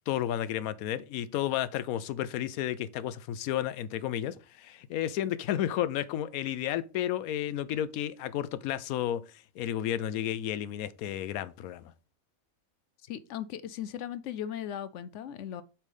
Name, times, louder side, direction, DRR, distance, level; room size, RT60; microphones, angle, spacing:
voice 1, 0.1-9.2 9.6-11.9, left 11 dB, 85° left, 1.0 m, -32 dB
voice 2, 13.0-15.6, left 10 dB, 65° left, 0.8 m, -38 dB
7.4 x 3.3 x 5.3 m
omnidirectional pair, 1.5 m